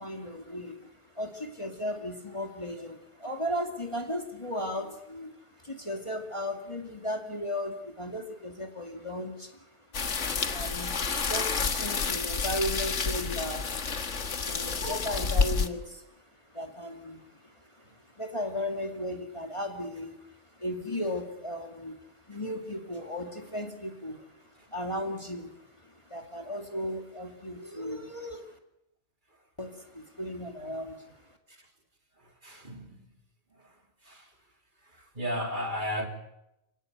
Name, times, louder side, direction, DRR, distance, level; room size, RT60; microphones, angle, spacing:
voice 1, 0.0-9.7 10.1-28.6 29.6-31.2, equal, 25° left, 3 dB, 2.4 m, -36 dB
sound 1, 9.9-15.7, left 5 dB, 85° left, 1.9 m, -29 dB
voice 2, 32.4-33.0 34.0-34.3 35.1-36.1, equal, 45° right, 3 dB, 3.5 m, -33 dB
26.5 x 18.0 x 8.1 m, 0.87 s
omnidirectional pair, 1.2 m